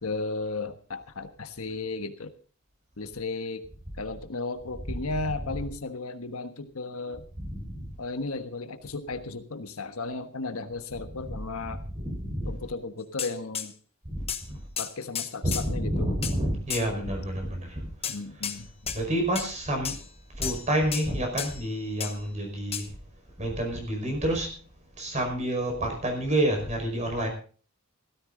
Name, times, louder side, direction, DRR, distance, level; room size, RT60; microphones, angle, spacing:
voice 1, 0.0-2.3 3.0-3.6 4.0-7.3 8.0-11.8 12.5-13.7 14.8-16.1 18.1-19.0, left 3 dB, 85° left, 8 dB, 1.3 m, -35 dB
voice 2, 7.4-7.8 12.0-12.5 14.1-14.6 15.4-17.9 18.9-20.0 20.4-22.9 23.4-24.5 25.0-27.3, right 1 dB, 35° right, 3 dB, 5.2 m, -29 dB
sound 1, 13.2-13.7 14.3-14.5 14.8-15.7 16.2-16.4 16.7-16.9 18.0-18.6 18.9-19.0 19.4-19.5 19.8-20.1 20.4-20.7 20.9-21.1 21.4-21.6 22.0-22.2 22.7-22.9, left 8 dB, 25° left, 1.0 m, -33 dB
16.0 x 14.0 x 3.9 m, 0.42 s
head